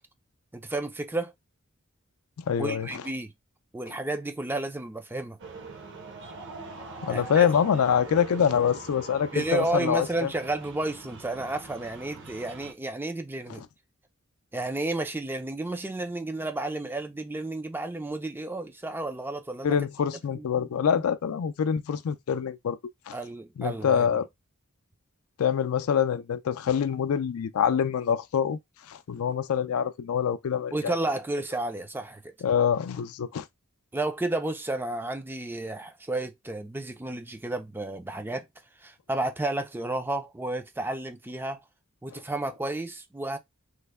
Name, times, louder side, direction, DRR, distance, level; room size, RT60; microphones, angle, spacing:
voice 1, 0.5-1.3 2.6-3.3 3.7-5.4 7.1-7.5 9.3-13.6 14.5-19.8 20.3-20.7 20.9-21.0 23.1-24.1 30.7-32.2 33.9-38.4 38.8-41.6 42.0-43.4, right 2 dB, 10° right, 0.4 m, -32 dB
voice 2, 2.5-3.0 7.0-10.3 19.6-22.8 23.1-23.2 23.6-24.3 25.4-28.6 28.9-31.0 32.4-33.5 42.1-42.2, left 7 dB, 70° left, 0.4 m, -25 dB
sound 1, 5.4-12.7, right 3 dB, 55° right, 0.8 m, -43 dB
3.2 x 2.1 x 3.4 m
head